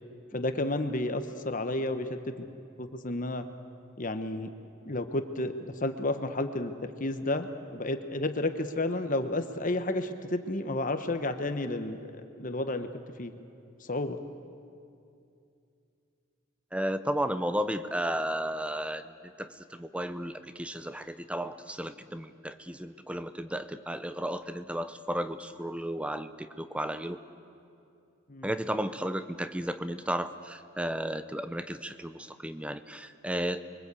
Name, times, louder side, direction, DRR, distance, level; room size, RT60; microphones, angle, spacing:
voice 1, 0.3-2.5 2.8-3.5 4.0-4.5 4.8-13.3 13.8-14.2 28.3-28.5, left 2 dB, 40° left, 8 dB, 1.1 m, -32 dB
voice 2, 16.7-27.2 28.4-33.7, equal, 5° right, 11 dB, 0.7 m, -34 dB
29.5 x 23.0 x 8.4 m, 2.6 s
head